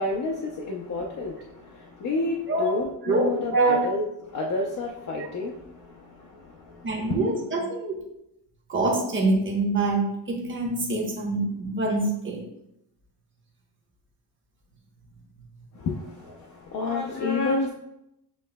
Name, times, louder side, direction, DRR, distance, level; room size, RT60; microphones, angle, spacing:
voice 1, 0.0-7.2 15.7-17.7, left 3 dB, 45° left, -1 dB, 0.6 m, -30 dB
voice 2, 3.0-3.8 6.8-8.0 8.7-12.4, right 2 dB, 30° right, -1 dB, 1.0 m, -25 dB
7.5 x 3.1 x 2.2 m, 0.83 s
cardioid pair, 140°, 43 cm